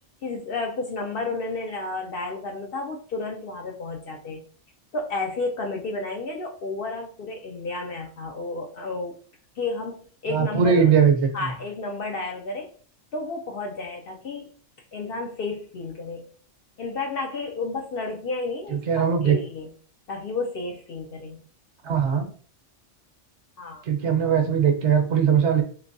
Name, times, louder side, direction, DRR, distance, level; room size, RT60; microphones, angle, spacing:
voice 1, 0.2-4.4 4.9-9.1 9.6-10.9 11.3-12.7 13.1-14.5 14.9-16.3 16.8-19.7 20.1-21.4 23.6-23.8, left 3 dB, 60° left, 2 dB, 0.7 m, -31 dB
voice 2, 10.3-11.5 18.7-19.4 21.8-22.3 23.8-25.6, right 7 dB, 70° right, 4 dB, 1.0 m, -20 dB
3.3 x 3.2 x 2.6 m, 0.43 s
omnidirectional pair, 1.2 m